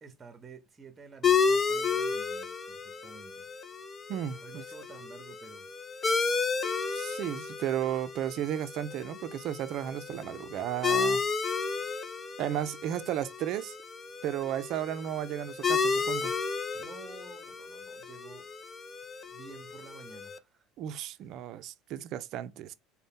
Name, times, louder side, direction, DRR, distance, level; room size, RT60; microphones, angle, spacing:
voice 1, 0.0-3.5 4.4-5.7 16.7-18.5 19.3-20.7 21.0-21.3, right 5 dB, 25° right, 0.8 m, -51 dB
sound 1, 1.2-20.4, left 5 dB, 30° left, 0.5 m, -32 dB
voice 2, 4.1-4.6 6.9-11.2 12.4-13.8 14.2-16.3 20.8-22.7, right 11 dB, 60° right, 0.4 m, -34 dB
3.9 x 2.1 x 3.6 m
hypercardioid pair, 85°, 0 cm